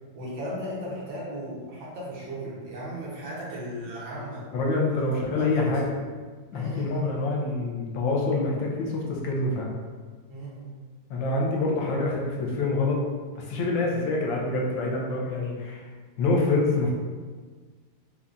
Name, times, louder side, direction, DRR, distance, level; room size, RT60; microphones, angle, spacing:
voice 1, 0.1-4.5 4.9-5.0 5.2-5.7 6.5-7.2 10.3-10.7 13.9-14.1, equal, 75° right, -6 dB, 1.6 m, -36 dB
voice 2, 4.5-6.0 6.5-9.7 11.1-13.0 13.4-15.9 16.2-16.9, left 3 dB, 85° left, -2 dB, 1.4 m, -26 dB
5.3 x 2.3 x 2.4 m, 1.5 s
omnidirectional pair, 2.1 m